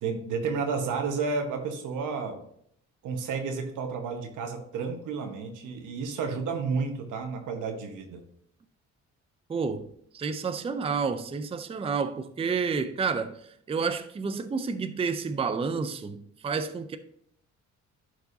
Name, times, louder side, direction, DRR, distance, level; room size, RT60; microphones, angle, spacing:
voice 1, 0.0-2.4 3.0-8.2, right 5 dB, 85° right, 1.2 m, -31 dB
voice 2, 9.5-9.9 10.1-13.4 13.7-17.0, right 5 dB, 20° right, 0.5 m, -30 dB
11.0 x 4.7 x 2.7 m
cardioid pair, 90°, 30 cm